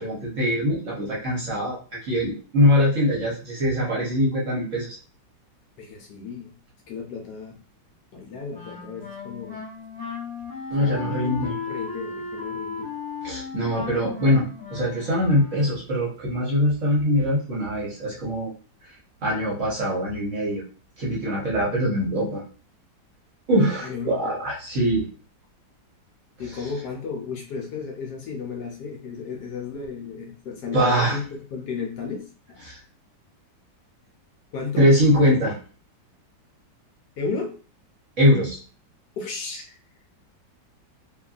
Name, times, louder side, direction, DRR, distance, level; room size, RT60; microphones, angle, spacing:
voice 1, 0.0-4.9 10.7-11.5 13.2-18.5 19.2-20.6 21.0-22.4 23.5-25.0 30.7-31.2 32.6-32.8 34.8-35.5 38.2-38.6, equal, 55° right, -4 dB, 1.1 m, -22 dB
voice 2, 5.8-6.5 6.9-7.6 8.1-9.6 10.8-12.9 23.8-24.3 26.4-32.7 34.5-34.9 37.2-37.6 39.2-39.7, left 5 dB, 75° left, 2 dB, 1.1 m, -34 dB
Wind instrument woodwind instrument, 8.5-15.9, left 5 dB, 25° left, 0.5 m, -35 dB
2.8 x 2.5 x 2.3 m, 0.38 s
omnidirectional pair, 1.9 m